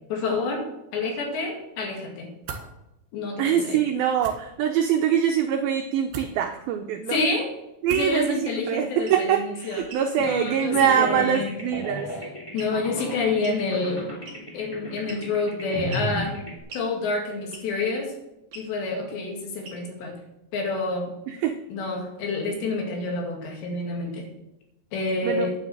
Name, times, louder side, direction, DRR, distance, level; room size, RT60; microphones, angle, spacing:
voice 1, 0.1-0.6 0.9-2.3 3.1-3.8 7.1-7.5 7.9-9.8 10.2-11.5 12.5-14.0 14.5-16.4 16.7-18.1 18.6-20.2 20.5-21.1 21.7-24.2 24.9-25.6, left 3 dB, 75° left, 1 dB, 4.4 m, -28 dB
sound 1, 2.4-2.7 4.2-4.4 6.1-6.3 7.8-8.2, right 6 dB, 65° right, 3.0 m, -37 dB
voice 2, 3.4-7.2 7.8-12.1 21.3-21.6 25.2-25.5, right 9 dB, 85° right, 5 dB, 2.1 m, -24 dB
sound 2, 9.0-9.2 9.8-10.1 10.8-11.0 12.6-12.9 13.4-13.6 14.3-14.6 15.1-15.4 15.9-16.1 16.7-16.9 17.5-17.8 18.5-18.7 19.6-20.0, right 4 dB, 45° right, 3.4 m, -42 dB
sound 3, 10.2-16.6, equal, 10° left, 1.7 m, -34 dB
9.5 x 7.4 x 7.6 m, 0.91 s
omnidirectional pair, 5.1 m